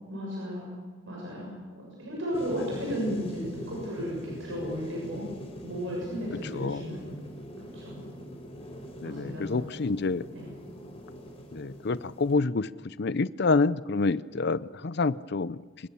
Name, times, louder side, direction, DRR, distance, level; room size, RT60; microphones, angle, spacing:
voice 1, 0.1-0.7 1.1-5.2 5.6-7.1 7.6-8.0 9.0-9.7 10.3-10.5, equal, 70° right, -3 dB, 7.1 m, -34 dB
sound 1, 2.3-12.3, equal, 30° left, 4.7 m, -42 dB
voice 2, 6.5-6.8 9.0-10.3 11.5-15.6, left 3 dB, 55° left, 17 dB, 0.6 m, -27 dB
25.5 x 22.5 x 7.2 m, 1.4 s
head